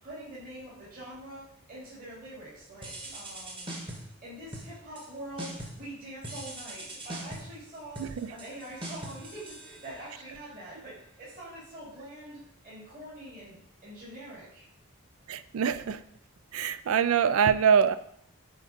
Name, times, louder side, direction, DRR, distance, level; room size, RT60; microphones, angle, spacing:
voice 1, 0.0-3.7 4.2-14.6, right 1 dB, 40° right, -9 dB, 2.9 m, -45 dB
sound 1, 2.8-4.2 4.5-5.1 5.4-5.9 6.2-10.2, right 1 dB, 25° right, 1.4 m, -41 dB
voice 2, 8.0-8.3 15.3-16.0 16.5-17.9, right 7 dB, 70° right, 13 dB, 0.4 m, -24 dB
8.7 x 3.9 x 5.1 m, 0.70 s
head